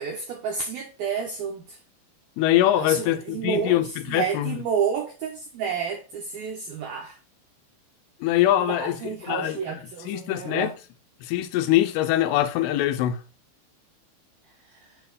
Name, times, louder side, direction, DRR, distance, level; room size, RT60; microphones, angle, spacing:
voice 1, 0.0-1.8 2.7-7.2 8.6-10.7 14.7-14.9, right 6 dB, 80° right, 2.2 m, -30 dB
voice 2, 2.4-4.6 8.2-9.6 10.1-10.7 11.2-13.2, left 13 dB, 80° left, 3.2 m, -23 dB
7.2 x 4.6 x 4.0 m
omnidirectional pair, 5.8 m